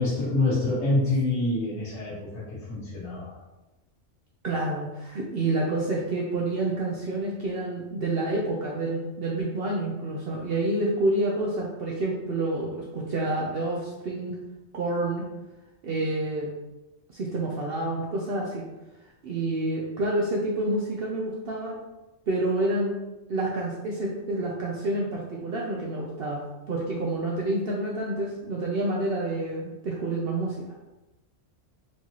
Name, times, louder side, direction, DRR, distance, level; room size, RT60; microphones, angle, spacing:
voice 1, 0.0-3.4, left 2 dB, 70° left, -8 dB, 1.5 m, -26 dB
voice 2, 4.4-14.4 14.7-15.2 15.8-16.5 17.1-18.7 19.2-21.8 22.3-22.9 23.3-26.4 26.7-30.6, right 2 dB, 60° right, -2 dB, 0.7 m, -28 dB
4.5 x 2.9 x 2.8 m, 1.1 s
omnidirectional pair, 1.3 m